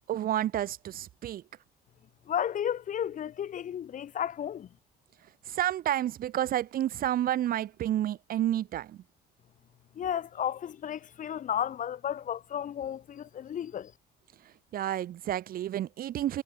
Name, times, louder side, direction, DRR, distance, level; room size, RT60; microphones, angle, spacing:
voice 1, 0.1-1.4 5.5-9.0 14.7-16.4, right 12 dB, 60° right, 1.3 m, -30 dB
voice 2, 2.3-4.7 10.0-13.9, left 9 dB, 50° left, 2.0 m, -33 dB
cardioid pair, 110°, 17 cm